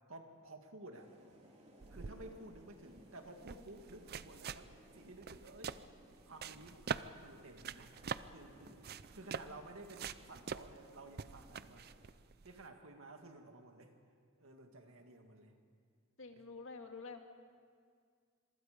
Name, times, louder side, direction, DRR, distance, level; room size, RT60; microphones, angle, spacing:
voice 1, 0.1-1.1 1.9-5.8 6.2-8.8 9.1-12.0 12.4-13.9 14.4-15.5, right 2 dB, 70° right, 4 dB, 2.2 m, -54 dB
sound 1, 0.9-12.1, right 1 dB, 30° right, 3.2 m, -62 dB
sound 2, 1.8-12.7, right 6 dB, 50° right, 0.5 m, -46 dB
voice 2, 16.2-17.2, left 4 dB, 65° left, 4 dB, 2.2 m, -48 dB
26.0 x 23.5 x 5.2 m, 2.1 s
head